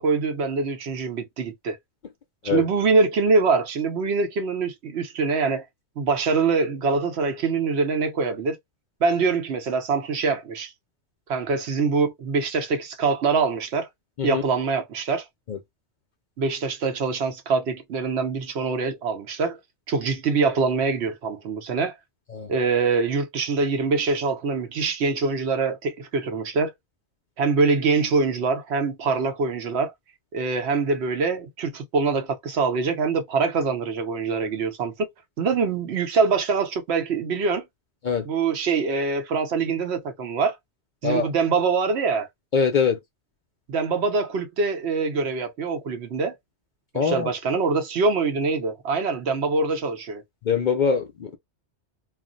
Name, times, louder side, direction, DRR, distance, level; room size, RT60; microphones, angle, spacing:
voice 1, 0.0-1.8 2.4-5.6 6.0-8.6 9.0-10.7 11.3-13.9 14.2-15.2 16.4-19.6 19.9-21.9 22.5-26.7 27.4-29.9 30.3-35.1 35.4-37.6 38.2-40.5 41.0-42.3 43.7-46.3 46.9-50.2, right 4 dB, 70° right, 1.0 m, -24 dB
voice 2, 42.5-43.0 46.9-47.3 50.5-51.4, left 6 dB, 55° left, 0.5 m, -23 dB
2.4 x 2.0 x 3.7 m
omnidirectional pair, 1.2 m